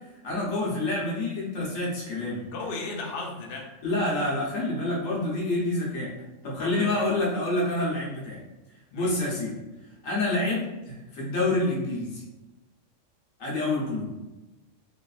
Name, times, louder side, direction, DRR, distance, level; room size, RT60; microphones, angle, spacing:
voice 1, 0.2-2.4 3.8-6.1 6.4-8.4 8.9-9.5 10.0-12.2 13.4-14.1, left 2 dB, 85° left, -5 dB, 1.3 m, -27 dB
voice 2, 2.5-3.7 6.6-7.2 8.9-9.1, left 3 dB, 60° left, 0 dB, 0.6 m, -36 dB
3.2 x 2.4 x 2.3 m, 1.1 s
omnidirectional pair, 1.3 m